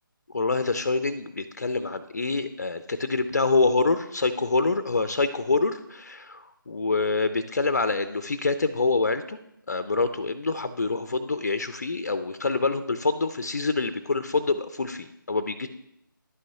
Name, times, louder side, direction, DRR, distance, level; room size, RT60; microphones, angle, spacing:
voice 1, 0.3-9.4 9.7-15.7, left 3 dB, 50° left, 11 dB, 0.4 m, -26 dB
11.0 x 8.8 x 2.8 m, 0.79 s
figure-of-eight pair, 155°, 11 cm